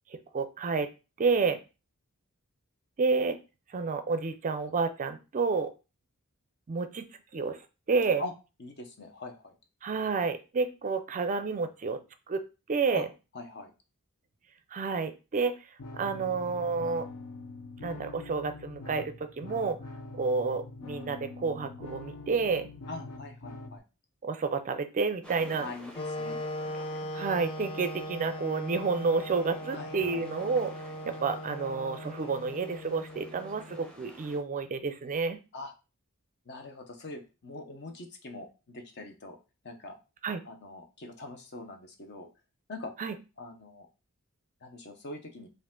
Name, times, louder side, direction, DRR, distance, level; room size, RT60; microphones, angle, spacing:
voice 1, 0.1-0.9 1.2-1.6 3.0-3.4 3.7-5.7 6.7-7.1 7.3-7.6 7.9-8.2 9.8-12.0 12.3-13.1 14.7-15.5 15.9-17.1 17.8-19.8 20.1-22.7 24.2-25.7 27.1-30.7 31.1-35.4 40.2-40.4 43.0-43.2, right 4 dB, 35° right, 10 dB, 0.4 m, -30 dB
voice 2, 8.6-9.6 12.9-13.1 13.3-13.7 22.9-23.8 25.6-26.4 29.7-30.2 35.5-35.7 36.5-39.4 39.6-40.0 40.4-42.3 42.7-42.9 43.4-43.9 44.6-45.5, left 2 dB, 50° left, 5 dB, 0.8 m, -42 dB
sound 1, 15.8-23.8, left 2 dB, 85° left, 0.7 m, -44 dB
sound 2, 25.2-34.4, equal, 5° left, 0.8 m, -52 dB
Wind instrument woodwind instrument, 25.9-33.9, left 1 dB, 25° left, 0.4 m, -39 dB
4.8 x 2.5 x 3.7 m, 0.30 s
head